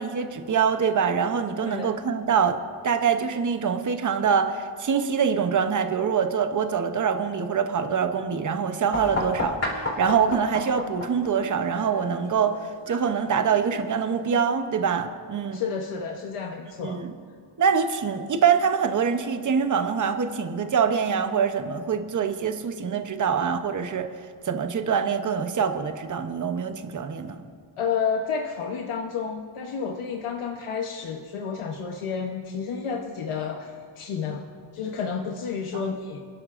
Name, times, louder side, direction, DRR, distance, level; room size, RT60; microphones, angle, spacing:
voice 1, 0.0-15.6 16.8-17.2 17.6-24.1 24.4-27.4 35.7-35.9, right 6 dB, 40° right, 8 dB, 0.7 m, -25 dB
voice 2, 1.6-2.0 15.5-17.0 27.8-34.5 34.7-36.2, left 6 dB, 85° left, 2 dB, 0.9 m, -30 dB
sound 1, 8.9-14.5, left 2 dB, 30° left, 3.6 m, -34 dB
28.0 x 11.0 x 2.5 m, 2.1 s
wide cardioid pair, 150°, 49 cm